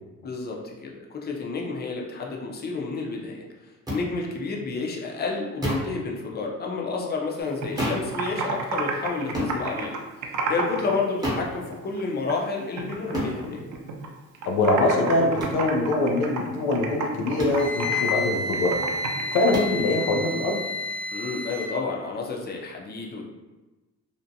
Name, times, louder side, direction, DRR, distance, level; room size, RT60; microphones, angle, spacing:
voice 1, 0.2-3.5 3.9-13.6 21.1-23.3, left 4 dB, 35° left, -1 dB, 0.5 m, -30 dB
sound 1, 3.9-4.0 5.6-6.0 7.8-8.1 9.3-9.6 11.2-11.5 13.1-13.4 15.4-15.6 17.4-17.7 19.5-19.8, equal, 15° right, 0.8 m, -28 dB
Computer keyboard, 7.4-10.9 11.2-12.5 12.8-14.1 14.3-19.5, right 4 dB, 80° right, 0.5 m, -31 dB
voice 2, 14.5-18.8 19.3-20.6, left 2 dB, 85° left, 2 dB, 0.4 m, -23 dB
Wind instrument woodwind instrument, 17.5-21.7, left 2 dB, 65° left, 0.9 m, -30 dB
2.6 x 2.1 x 2.6 m, 1.1 s
cardioid pair, 90°, 30 cm